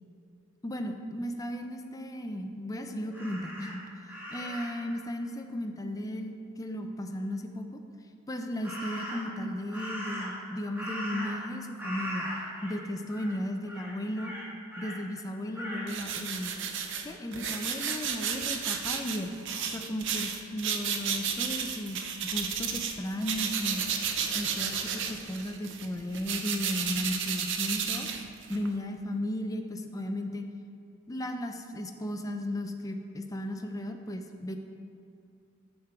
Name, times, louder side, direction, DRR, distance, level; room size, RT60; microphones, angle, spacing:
voice 1, 0.6-3.8 4.3-7.8 8.3-12.3 12.6-14.3 14.8-16.6 17.0-19.4 19.7-23.8 24.3-28.1 28.5-30.5 31.1-34.6, left 1 dB, 15° left, 4 dB, 0.4 m, -35 dB
Crow, 3.1-4.9 8.6-9.4 9.7-11.5 11.8-12.8 13.1-13.4 13.7-15.0 15.5-15.9, equal, 10° right, 1.4 m, -39 dB
sound 1, 15.9-23.0 23.2-28.7, right 7 dB, 60° right, 0.6 m, -33 dB
6.9 x 6.7 x 4.5 m, 2.5 s
head